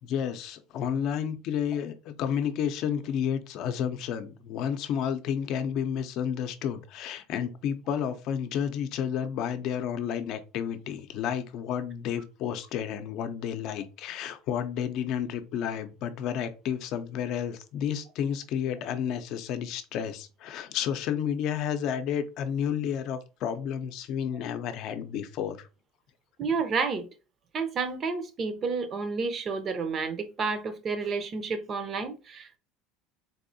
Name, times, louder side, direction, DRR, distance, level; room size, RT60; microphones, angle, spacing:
voice 1, 0.0-25.7, left 8 dB, 55° left, 0.6 m, -31 dB
voice 2, 26.4-27.1 27.5-32.6, right 4 dB, 35° right, 0.6 m, -30 dB
4.1 x 2.6 x 2.6 m
supercardioid pair, 120°, 0 cm